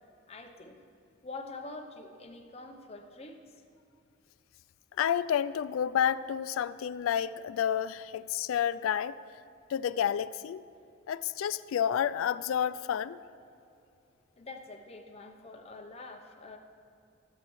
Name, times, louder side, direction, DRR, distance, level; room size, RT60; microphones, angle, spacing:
voice 1, 0.3-0.8 1.2-3.6 14.4-16.6, left 3 dB, 30° left, 3 dB, 0.7 m, -45 dB
voice 2, 5.0-9.1 9.7-10.6 11.1-13.2, left 9 dB, 80° left, 16 dB, 0.3 m, -30 dB
16.5 x 7.7 x 3.1 m, 2.6 s
head